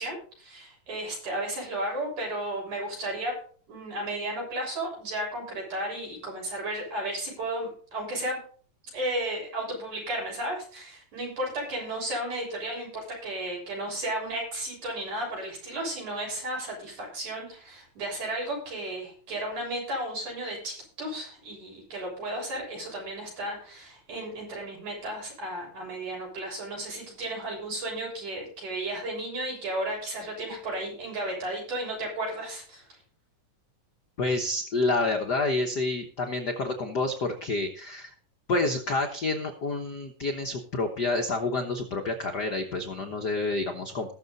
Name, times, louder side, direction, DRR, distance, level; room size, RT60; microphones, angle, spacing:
voice 1, 0.0-3.4 3.7-8.4 8.9-33.0, right 1 dB, 65° right, -2 dB, 8.5 m, -34 dB
voice 2, 34.2-38.1 38.5-44.1, left 2 dB, 85° left, 4 dB, 0.9 m, -28 dB
20.0 x 6.8 x 4.1 m, 0.43 s
omnidirectional pair, 3.8 m